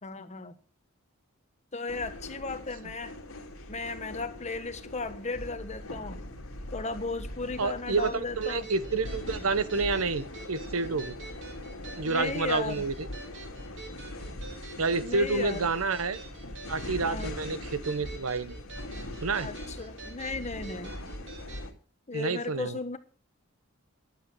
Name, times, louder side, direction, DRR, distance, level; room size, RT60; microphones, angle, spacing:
voice 1, 0.0-0.5 1.7-3.1 3.7-6.2 6.7-8.7 12.0-12.9 15.0-15.6 17.0-17.3 19.4-20.9 22.1-23.0, left 3 dB, 35° left, 1.3 m, -35 dB
sound 1, 1.9-21.7, left 1 dB, 80° left, 2.2 m, -41 dB
voice 2, 7.6-11.2 12.0-13.1 14.8-16.2 16.7-18.6 19.2-19.5 22.1-22.8, right 4 dB, 80° right, 0.9 m, -29 dB
sound 2, 8.0-21.7, right 4 dB, 60° right, 3.4 m, -47 dB
11.5 x 9.2 x 6.2 m
head